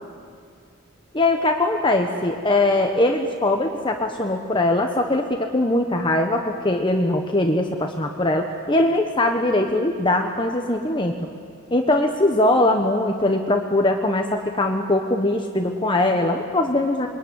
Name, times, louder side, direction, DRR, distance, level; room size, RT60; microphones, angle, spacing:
voice 1, 1.1-11.1 11.7-17.1, left 2 dB, 25° left, 3 dB, 1.3 m, -21 dB
27.5 x 22.5 x 9.6 m, 2.2 s
head